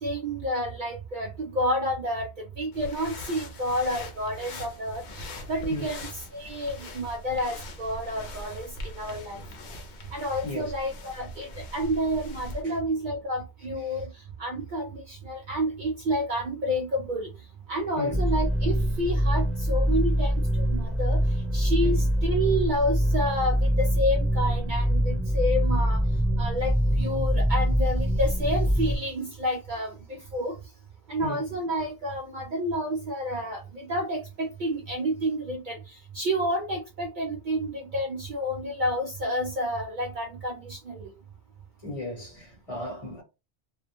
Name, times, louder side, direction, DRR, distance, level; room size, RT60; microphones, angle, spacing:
voice 1, 0.0-2.3 2.6-8.7 8.9-9.4 10.1-14.1 14.4-17.3 17.7-21.2 21.5-26.0 26.4-30.0 30.3-30.6 31.1-41.1, equal, 60° right, 0.6 m, -29 dB
sound 1, 2.7-12.6, left 2 dB, 75° left, 0.9 m, -42 dB
voice 2, 18.0-18.3 21.8-22.0 31.2-31.4 41.8-43.2, left 2 dB, 35° left, 1.0 m, -36 dB
sound 2, 18.1-29.0, equal, ahead, 0.4 m, -24 dB
2.4 x 2.1 x 2.8 m
omnidirectional pair, 1.1 m